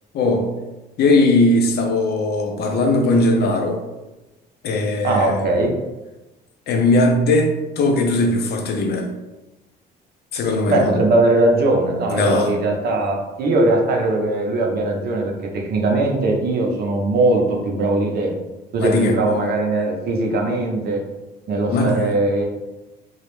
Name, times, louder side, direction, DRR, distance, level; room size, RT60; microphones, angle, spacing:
voice 1, 0.1-0.6 1.0-3.8 4.6-5.4 6.7-9.1 10.3-10.9 12.1-12.5 18.8-19.2 21.7-22.1, left 2 dB, 60° left, 0.5 m, -19 dB
voice 2, 5.0-5.7 10.7-18.3 18.7-21.0 21.5-22.4, right 2 dB, 60° right, 0.6 m, -20 dB
2.3 x 2.1 x 3.0 m
cardioid pair, 95°, 19 cm